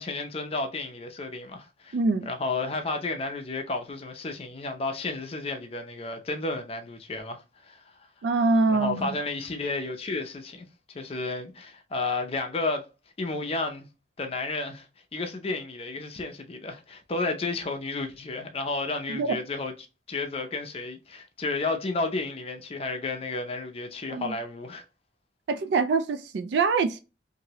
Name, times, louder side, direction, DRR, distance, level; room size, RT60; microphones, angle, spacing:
voice 1, 0.0-2.0 2.3-7.8 8.7-12.9 13.2-13.9 14.2-14.9 15.1-19.7 20.1-24.8, left 3 dB, 35° left, 0.5 m, -32 dB
voice 2, 1.9-2.3 8.2-9.1 19.1-19.4 24.1-24.3 25.5-27.0, right 4 dB, 75° right, 0.3 m, -24 dB
2.8 x 2.6 x 2.9 m
head